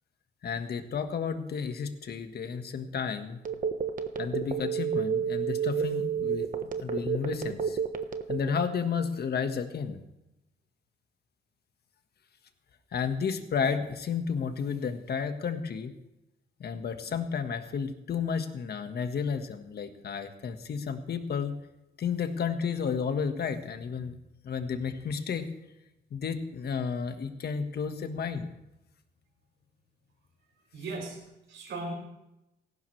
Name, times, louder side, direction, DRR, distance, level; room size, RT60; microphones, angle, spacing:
voice 1, 0.4-3.4 4.2-6.5 6.8-7.8 8.3-10.0 12.9-15.9 16.6-21.6 22.0-24.2 24.4-25.5 26.1-28.5, left 6 dB, 55° left, 8 dB, 1.6 m, -32 dB
Telephone, 3.4-8.7, right 7 dB, 45° right, 1.3 m, -29 dB
voice 2, 30.7-31.9, right 2 dB, 70° right, -2 dB, 5.9 m, -38 dB
18.0 x 15.0 x 3.3 m, 0.93 s
cardioid pair, 90°, 20 cm